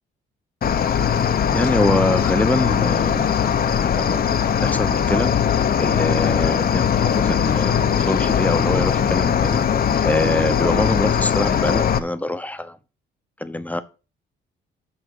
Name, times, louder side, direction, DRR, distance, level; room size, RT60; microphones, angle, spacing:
Cricket, 0.6-12.0, left 8 dB, 50° left, 0.9 m, -20 dB
voice 1, 1.5-3.3 4.0-4.2 4.6-5.3 5.8-9.6 10.0-12.8 13.4-13.8, left 1 dB, 5° left, 0.9 m, -24 dB
sound 1, 6.1-11.1, left 7 dB, 85° left, 2.5 m, -36 dB
8.4 x 5.7 x 5.6 m
cardioid pair, 90°, 20 cm